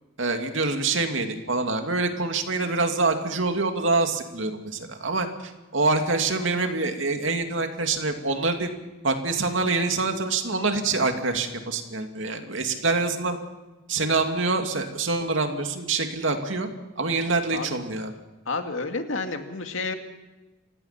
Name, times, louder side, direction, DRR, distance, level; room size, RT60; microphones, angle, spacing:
voice 1, 0.2-8.7 9.0-13.4 13.9-16.7 17.0-18.1, right 3 dB, 70° right, 5 dB, 2.7 m, -25 dB
voice 2, 18.5-19.9, left 3 dB, 75° left, 6 dB, 2.3 m, -30 dB
29.5 x 17.0 x 5.9 m, 1.1 s
head